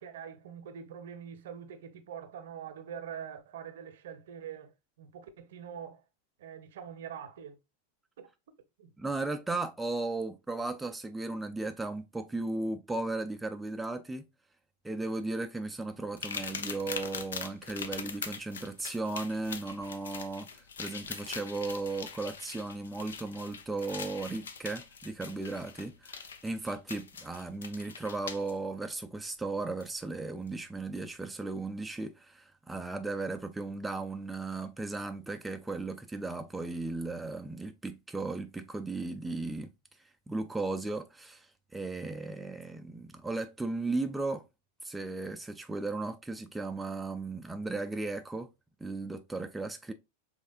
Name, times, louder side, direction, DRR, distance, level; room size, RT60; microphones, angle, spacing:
voice 1, 0.0-4.7 5.0-6.0 6.4-7.6 8.2-8.3 8.8-8.9, right 8 dB, 55° right, 0.7 m, -44 dB
voice 2, 9.0-14.2 14.8-39.7 40.3-44.4 44.8-48.5 48.8-49.9, right 3 dB, 5° right, 0.4 m, -36 dB
sound 1, 16.2-28.5 29.8-29.9 30.5-30.6, left 6 dB, 65° left, 0.6 m, -42 dB
5.3 x 3.5 x 2.4 m
figure-of-eight pair, 90°, 0 cm